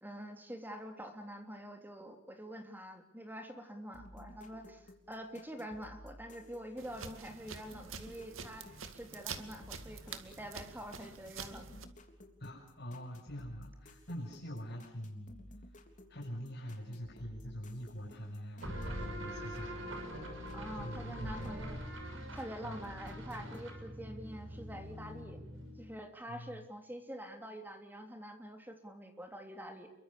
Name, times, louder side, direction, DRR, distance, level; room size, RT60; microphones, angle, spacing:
voice 1, 0.0-11.8 20.5-21.8 22.3-25.4 25.8-29.9, equal, 10° right, 6 dB, 3.3 m, -46 dB
sound 1, 3.9-20.6 20.9-22.5 22.8-23.7, left 1 dB, 40° left, 3.6 m, -56 dB
sound 2, 6.8-11.8, right 6 dB, 85° right, 2.3 m, -47 dB
voice 2, 12.4-15.4 16.1-19.9 20.7-21.8 22.6-22.8 25.3-25.4 26.3-26.6, equal, 55° left, -3 dB, 6.2 m, -44 dB
sound 3, 18.6-26.0, equal, 70° right, 6.3 m, -43 dB
29.0 x 23.5 x 7.0 m, 0.73 s
head